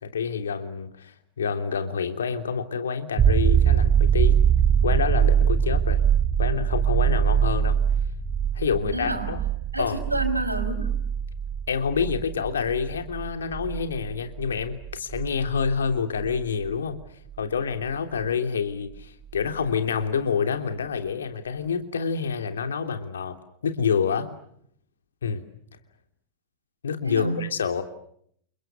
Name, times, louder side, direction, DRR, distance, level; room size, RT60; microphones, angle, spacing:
voice 1, 0.0-4.4 4.8-6.0 6.4-7.8 8.5-9.4 9.8-10.0 11.7-17.0 17.4-23.4 23.6-24.3 25.2-25.4 26.8-27.8, left 6 dB, 65° left, 7 dB, 3.2 m, -27 dB
sound 1, 3.2-16.7 19.4-19.5, right 8 dB, 25° right, 2.1 m, -23 dB
voice 2, 8.9-9.3 9.7-11.0 27.0-27.4, right 1 dB, 85° right, 9 dB, 5.3 m, -28 dB
29.5 x 29.5 x 6.7 m, 0.67 s
figure-of-eight pair, 90°, 0 cm